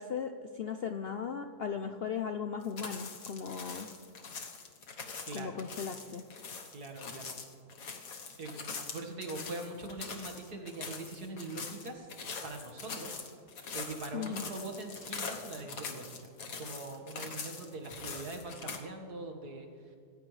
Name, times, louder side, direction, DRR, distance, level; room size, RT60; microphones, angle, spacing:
voice 1, 0.0-3.9 5.3-6.2 14.1-14.5, left 7 dB, 75° left, 7 dB, 0.5 m, -37 dB
sound 1, 2.6-18.8, left 5 dB, 60° left, 1.6 m, -43 dB
voice 2, 5.3-5.6 6.7-7.3 8.4-12.1 12.4-13.2 13.7-16.2 16.6-20.0, right 2 dB, 70° right, 3 dB, 2.2 m, -42 dB
26.5 x 15.0 x 3.3 m, 2.2 s
omnidirectional pair, 1.8 m